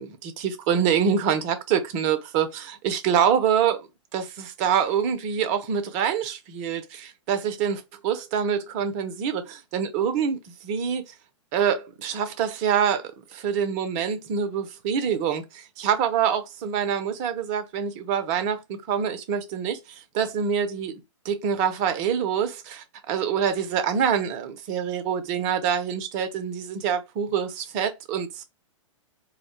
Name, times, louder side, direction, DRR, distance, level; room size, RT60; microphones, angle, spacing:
voice 1, 0.0-3.9 4.1-11.0 11.5-28.4, right 8 dB, 30° right, 0.5 m, -26 dB
2.2 x 2.0 x 2.9 m
figure-of-eight pair, 110°, 16 cm